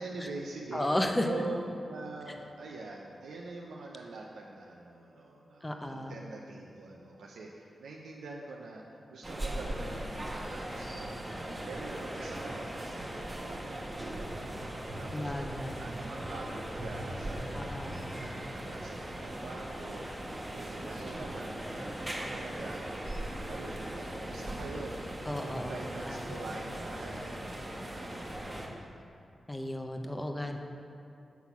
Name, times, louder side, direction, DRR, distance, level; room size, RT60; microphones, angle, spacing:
voice 1, 0.0-0.9 1.3-1.6 1.9-15.5 15.8-28.9, right 3 dB, 90° right, -2 dB, 0.5 m, -45 dB
voice 2, 0.7-1.3 5.6-6.1 15.1-15.9 17.5-18.0 25.3-25.7 26.1-26.4 29.5-30.6, left 1 dB, 20° left, 4 dB, 0.7 m, -34 dB
sound 1, 9.2-28.7, right 1 dB, 20° right, 1.3 m, -39 dB
8.2 x 4.0 x 5.8 m, 2.7 s
cardioid pair, 45°, 0 cm